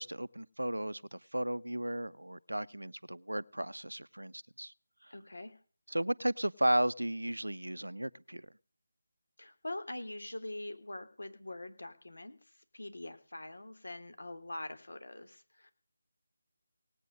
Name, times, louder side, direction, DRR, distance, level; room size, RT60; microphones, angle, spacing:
voice 1, 0.0-4.7 5.0-5.1 5.9-8.5, right 1 dB, 90° right, 0.8 m, -34 dB
voice 2, 5.1-5.6 9.4-12.4 12.7-15.7, left 1 dB, 75° left, 3.4 m, -43 dB
19.0 x 9.2 x 6.4 m
figure-of-eight pair, 160°, 0 cm